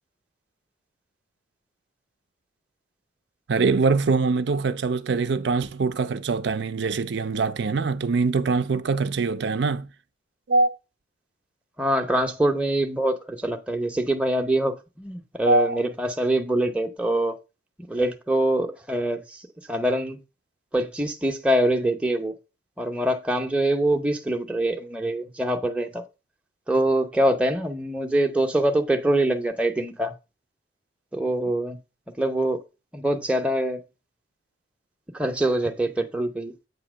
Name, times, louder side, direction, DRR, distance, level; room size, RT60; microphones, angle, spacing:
voice 1, 3.5-9.9 10.5-10.7 15.5-15.8, right 4 dB, 65° right, 0.5 m, -23 dB
voice 2, 11.8-17.3 17.9-19.4 19.7-20.2 20.7-22.3 22.8-26.0 26.7-30.1 31.1-31.8 32.2-32.6 32.9-33.8 35.1-36.5, right 1 dB, 5° right, 0.7 m, -24 dB
8.1 x 2.8 x 6.1 m
head